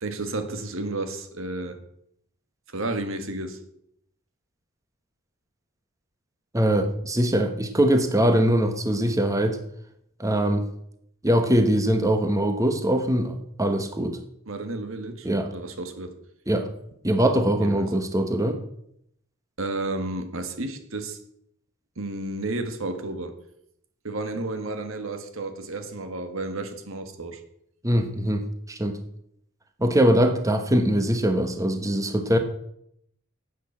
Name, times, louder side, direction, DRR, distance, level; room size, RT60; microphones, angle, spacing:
voice 1, 0.0-1.8 2.7-3.6 14.5-16.2 17.6-18.0 19.6-21.2 22.0-23.4 24.0-27.4, right 2 dB, 70° right, 1.7 m, -32 dB
voice 2, 6.5-9.6 10.2-10.6 11.2-14.2 15.2-15.5 16.5-16.7 17.0-18.6 27.8-29.0 29.8-32.4, right 1 dB, 15° right, 1.2 m, -22 dB
11.0 x 8.5 x 7.3 m
head